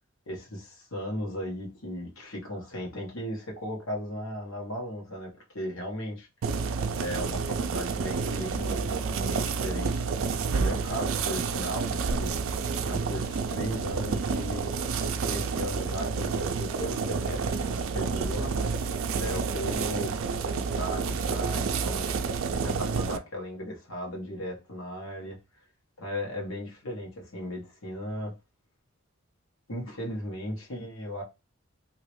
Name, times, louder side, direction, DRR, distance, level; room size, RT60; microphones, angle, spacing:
voice 1, 0.3-6.3 7.0-12.4 12.9-14.8 15.3-18.6 19.2-22.1 22.6-25.4 26.0-28.3 29.7-31.2, equal, 80° left, 1.3 m, -36 dB
sound 1, 6.4-23.2, right 5 dB, 75° right, 0.4 m, -29 dB
3.1 x 2.8 x 3.0 m
head